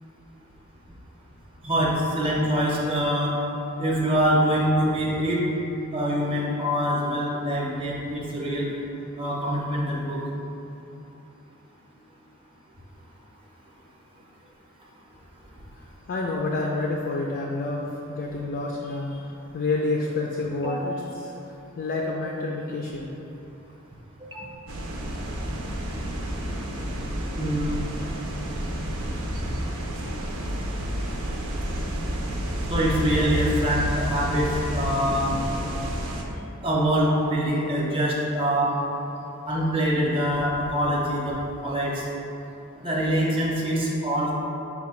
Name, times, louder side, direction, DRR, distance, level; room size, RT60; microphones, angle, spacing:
voice 1, 1.6-3.3 3.8-5.4 5.9-8.7 9.2-10.2 20.6-20.8 24.2-24.5 27.3-27.9 29.0-29.1 29.4-29.5 32.7-35.4 36.6-38.7 39.4-41.4 41.6-42.0 42.8-44.3, equal, 25° right, -4 dB, 0.7 m, -24 dB
voice 2, 16.1-23.1, left 2 dB, 50° left, -1 dB, 0.4 m, -29 dB
sound 1, 24.7-36.2, equal, 80° right, 0.6 m, -30 dB
5.7 x 2.2 x 4.2 m, 3.0 s
head